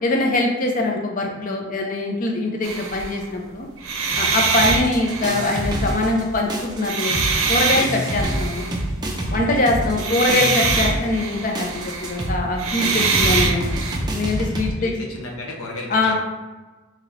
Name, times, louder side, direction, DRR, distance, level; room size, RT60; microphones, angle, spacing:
voice 1, 0.0-3.7 4.1-8.7 9.3-13.7 14.1-14.9 15.9-16.1, left 2 dB, 40° left, 1 dB, 0.5 m, -23 dB
sound 1, 2.6-3.2 3.8-6.3 6.7-8.8 9.9-14.0, right 4 dB, 80° right, 0.6 m, -24 dB
sound 2, 4.6-6.2 6.5-14.7, right 1 dB, 20° right, 0.5 m, -27 dB
voice 2, 9.2-10.1 14.8-16.1, left 2 dB, 85° left, -1 dB, 0.8 m, -34 dB
3.8 x 2.8 x 3.1 m, 1.2 s
head